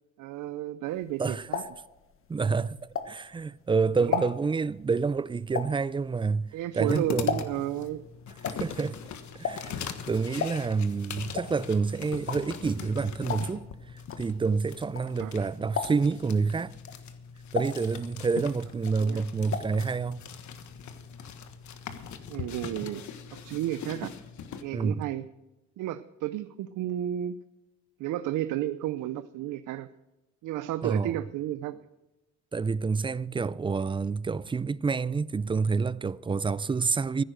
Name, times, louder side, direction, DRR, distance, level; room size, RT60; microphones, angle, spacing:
voice 1, 0.2-1.6 4.1-4.3 6.5-8.0 15.2-15.5 19.0-19.2 22.3-23.0 23.3-24.1 24.6-25.2 25.8-27.4 28.0-29.9 30.4-31.8, right 13 dB, 85° right, 0.5 m, -32 dB
sound 1, 1.0-3.5 3.9-7.8 8.1-15.4 15.7-16.3 16.7-18.5 18.7-19.8 20.1-20.2 20.4-20.5, left 6 dB, 45° left, 1.2 m, -35 dB
voice 2, 2.3-2.8 3.1-7.4 8.6-9.0 9.3-13.7 14.2-16.7 17.5-20.3 24.7-25.1 30.8-31.1 32.5-37.2, right 4 dB, 15° right, 0.4 m, -28 dB
sound 2, 6.8-24.6, left 7 dB, 70° left, 1.4 m, -41 dB
15.0 x 10.0 x 6.4 m
cardioid pair, 90°, 30 cm